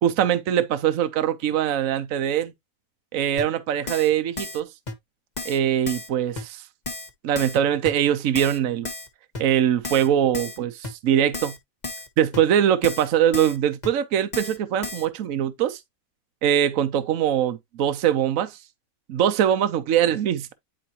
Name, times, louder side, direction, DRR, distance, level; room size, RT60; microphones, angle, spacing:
voice 1, 0.0-2.5 3.1-4.7 5.4-6.6 7.2-8.9 9.4-11.5 12.2-15.8 16.4-18.6 19.1-20.5, right 10 dB, 65° right, 1.1 m, -22 dB
Keyboard (musical), 3.4-3.5 3.9-4.1 4.4-4.6 4.9-5.0 5.4-5.6 5.9-6.1 6.4-6.5 6.9-7.1 7.4-7.6 7.9-8.0 8.4-8.6 8.9-9.1 9.3-9.4 9.8-10.1 10.3-10.6 10.8-10.9 11.3-11.6 11.8-12.1 12.3-12.4 12.8-13.1 13.3-13.6 13.8-13.9 14.3-14.6 14.8-15.1, left 3 dB, 30° left, 1.4 m, -33 dB
10.0 x 4.3 x 2.9 m
omnidirectional pair, 1.6 m